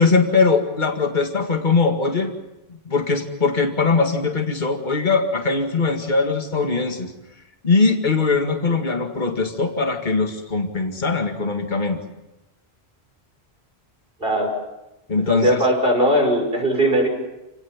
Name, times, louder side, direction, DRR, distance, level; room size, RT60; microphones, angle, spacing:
voice 1, 0.0-2.3 2.7-7.1 7.6-12.0 15.1-15.6, left 4 dB, 45° left, 4 dB, 2.2 m, -21 dB
voice 2, 14.2-14.5 15.3-17.1, equal, 60° right, 2 dB, 5.9 m, -19 dB
28.5 x 18.5 x 7.4 m, 0.98 s
omnidirectional pair, 1.1 m